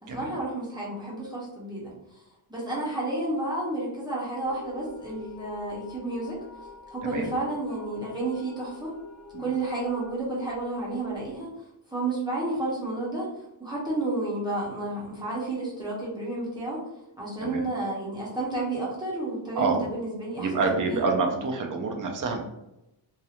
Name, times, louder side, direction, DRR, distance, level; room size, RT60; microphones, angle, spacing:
voice 1, 0.0-2.2 2.5-6.4 6.9-9.0 9.4-11.5 11.9-16.8 17.2-21.4, right 2 dB, 10° right, -7 dB, 0.7 m, -31 dB
sound 1, 4.4-11.3, left 4 dB, 45° left, 0.5 m, -45 dB
voice 2, 7.0-7.3 9.3-9.5 17.4-17.6 19.5-19.8 20.4-22.4, right 4 dB, 45° right, 3 dB, 0.4 m, -27 dB
2.9 x 2.3 x 2.4 m, 0.89 s
wide cardioid pair, 160°, 48 cm